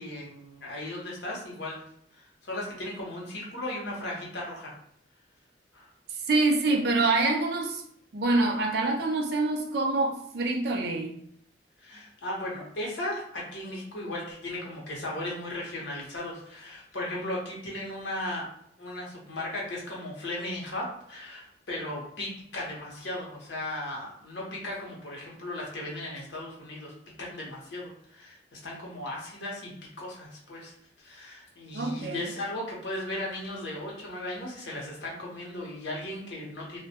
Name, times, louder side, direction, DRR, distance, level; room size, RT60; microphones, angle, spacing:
voice 1, 0.0-1.8 2.1-4.7 5.7-5.9 11.8-18.4 18.8-26.9 27.2-29.7 30.0-36.8, left 1 dB, 75° left, -3 dB, 0.8 m, -36 dB
voice 2, 6.3-7.8 8.1-11.2 31.7-32.3, right 2 dB, 60° right, 2 dB, 0.4 m, -26 dB
2.1 x 2.1 x 2.7 m, 0.68 s
head